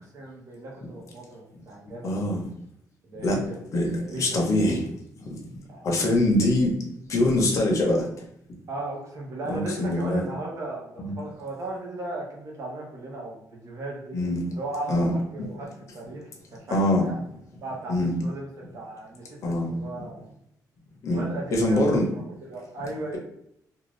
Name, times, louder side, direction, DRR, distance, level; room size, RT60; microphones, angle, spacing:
voice 1, 0.0-2.2 3.0-3.6 3.9-4.4 5.7-5.8 8.7-14.2 14.5-15.7 15.9-17.2 17.6-17.9 18.2-18.5 18.7-20.3 21.1-23.2, right 2 dB, 50° right, -3 dB, 0.9 m, -36 dB
voice 2, 2.0-2.4 3.2-3.4 3.7-4.9 5.2-5.3 5.8-6.7 7.1-8.1 9.5-10.3 11.0-11.1 14.1-14.4 14.9-15.1 16.7-17.1 17.9-18.1 19.4-19.7 21.0-21.3 21.5-22.1, left 1 dB, 50° left, 0 dB, 0.8 m, -23 dB
2.6 x 2.4 x 3.1 m, 0.74 s
cardioid pair, 145°, 7 cm